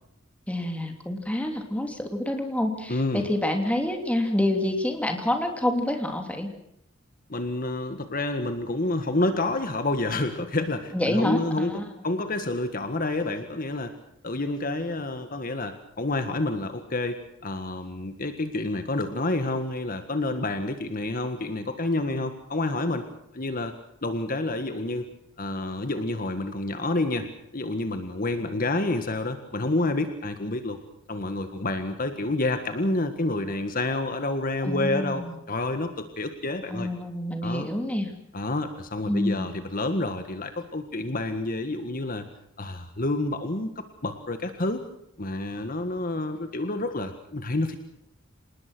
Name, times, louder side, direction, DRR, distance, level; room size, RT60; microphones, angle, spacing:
voice 1, 0.5-6.5 10.9-11.9 34.6-35.4 36.7-38.1 39.1-39.5, left 1 dB, 5° left, 4 dB, 3.0 m, -27 dB
voice 2, 2.9-3.3 7.3-13.9 14.2-23.1 23.3-23.7 24.0-25.1 25.4-30.8 31.1-35.2 35.5-36.9 37.4-37.7 38.3-42.3 42.6-43.7 44.0-44.9 45.2-47.8, left 2 dB, 45° left, 8 dB, 1.7 m, -28 dB
27.0 x 20.0 x 6.3 m, 0.74 s
head